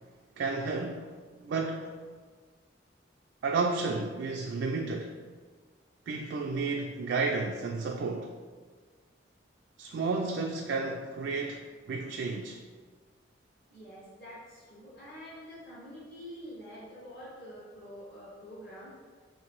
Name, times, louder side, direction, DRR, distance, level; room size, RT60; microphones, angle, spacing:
voice 1, 0.4-1.1 1.4-1.9 3.4-5.2 6.1-8.3 9.8-12.6, right 3 dB, 70° right, 1 dB, 0.3 m, -32 dB
voice 2, 13.7-18.9, equal, 55° left, -10 dB, 1.1 m, -47 dB
3.2 x 2.9 x 4.5 m, 1.5 s
head